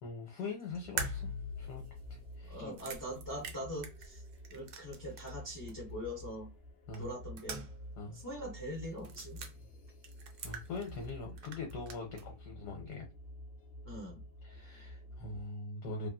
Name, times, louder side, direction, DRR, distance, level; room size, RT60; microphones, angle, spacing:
voice 1, 0.0-1.3 1.6-1.8 2.1-2.8 6.9-7.1 8.0-8.2 10.4-13.1 14.4-16.1, left 3 dB, 75° left, 1.2 m, -42 dB
sound 1, 0.7-15.4, equal, 55° left, 0.7 m, -50 dB
sound 2, 1.0-5.4 5.7-5.8 6.9-7.9 8.2-8.3 9.0-9.5 10.0-11.1 11.4-12.3, right 2 dB, 70° right, 1.0 m, -43 dB
voice 2, 2.5-4.2 4.5-6.5 7.0-7.6 8.1-9.4 13.8-14.2, equal, 25° left, 0.4 m, -42 dB
2.9 x 2.4 x 2.3 m
omnidirectional pair, 1.8 m